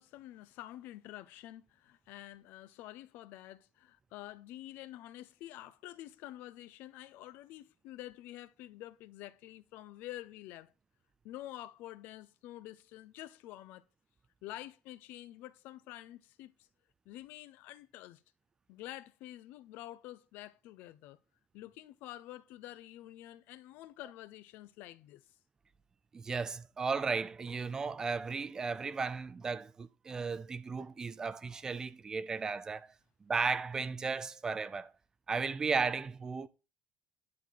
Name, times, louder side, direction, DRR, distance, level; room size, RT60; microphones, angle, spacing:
voice 1, 0.0-10.7 11.2-13.8 14.4-16.7 17.0-18.2 18.7-21.2 21.5-25.3, left 14 dB, 70° left, 0.8 m, -48 dB
voice 2, 26.1-32.9 33.3-34.9 35.3-36.5, right 4 dB, 20° right, 0.5 m, -35 dB
11.0 x 4.3 x 7.6 m
cardioid pair, 170°, 3 cm